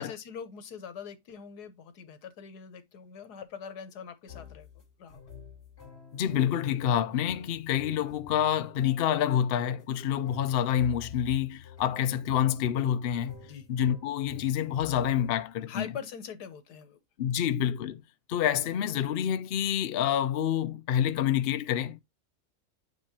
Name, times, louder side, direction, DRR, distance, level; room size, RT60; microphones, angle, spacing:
voice 1, 0.0-4.7 5.0-5.2 13.5-13.7 15.7-17.0 17.3-17.5, left 7 dB, 90° left, 1.5 m, -43 dB
sound 1, 4.3-15.4, left 5 dB, 40° left, 2.5 m, -49 dB
voice 2, 6.1-13.4 13.7-15.9 17.2-18.0 18.3-22.0, left 10 dB, 65° left, 0.5 m, -27 dB
8.6 x 4.7 x 2.9 m
omnidirectional pair, 1.6 m